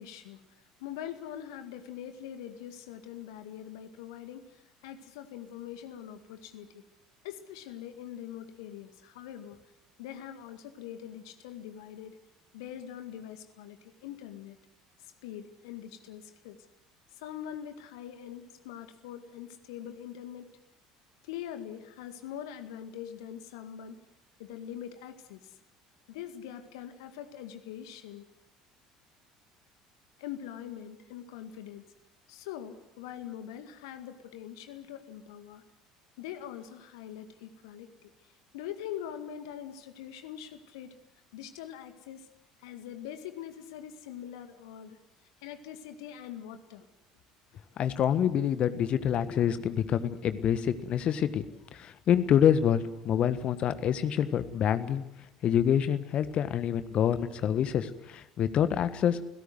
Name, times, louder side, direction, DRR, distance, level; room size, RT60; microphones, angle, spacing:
voice 1, 0.0-6.8 7.2-9.6 10.0-12.2 12.5-14.6 15.0-16.6 17.2-20.5 21.2-24.0 24.4-25.6 26.1-28.3 30.2-31.9 32.3-35.6 36.2-41.0 41.3-42.3 42.6-45.0 45.4-46.9, left 10 dB, 65° left, 9 dB, 2.0 m, -43 dB
voice 2, 47.8-51.5 51.7-55.0 55.4-59.2, left 9 dB, 45° left, 12 dB, 1.5 m, -26 dB
29.5 x 17.0 x 8.0 m, 0.90 s
figure-of-eight pair, 60°, 3 cm